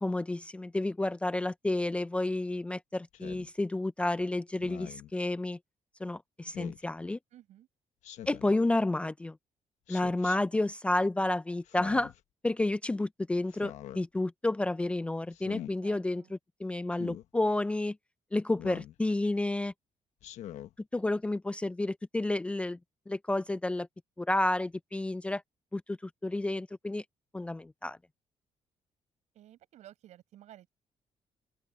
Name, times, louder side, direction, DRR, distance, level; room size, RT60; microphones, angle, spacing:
voice 1, 0.0-5.6 6.0-7.2 8.3-9.4 9.9-12.1 12.4-18.0 18.3-19.7 20.9-22.8 23.1-23.9 24.2-25.4 25.7-27.0 27.3-28.0, left 2 dB, 10° left, 0.4 m, -30 dB
Speech synthesizer, 3.1-3.5 4.6-5.1 6.5-6.8 8.0-8.5 9.9-10.4 11.6-12.2 13.5-14.0 15.3-15.7 16.9-17.2 18.6-19.0 20.2-20.7, left 12 dB, 85° left, 1.1 m, -44 dB
voice 2, 7.3-7.7 15.8-16.3 29.3-30.7, right 12 dB, 80° right, 7.9 m, -54 dB
open air
cardioid pair, 165°, 12 cm